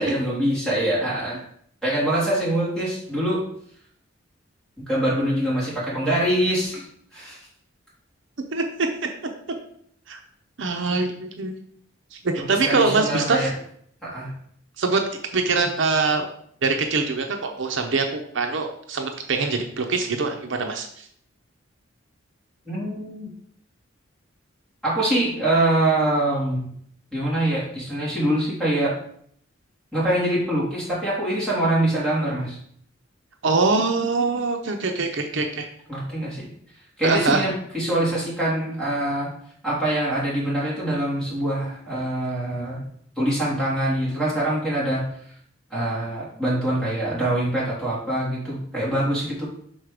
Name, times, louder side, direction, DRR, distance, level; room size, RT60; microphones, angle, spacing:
voice 1, 0.0-1.5 1.8-3.4 4.9-6.8 7.1-7.5 12.6-13.5 14.0-14.3 22.6-23.3 24.8-26.7 27.1-29.0 29.9-32.6 35.9-36.5 37.0-39.3 39.6-42.9 43.2-45.1 45.7-49.5, right 1 dB, ahead, -9 dB, 3.0 m, -24 dB
voice 2, 8.5-8.9 10.1-10.2 10.6-11.5 12.1-13.5 14.8-15.0 15.3-16.3 16.6-21.1 33.4-35.7 37.0-37.4, right 4 dB, 65° right, 4 dB, 0.7 m, -23 dB
6.3 x 4.1 x 4.9 m, 0.66 s
head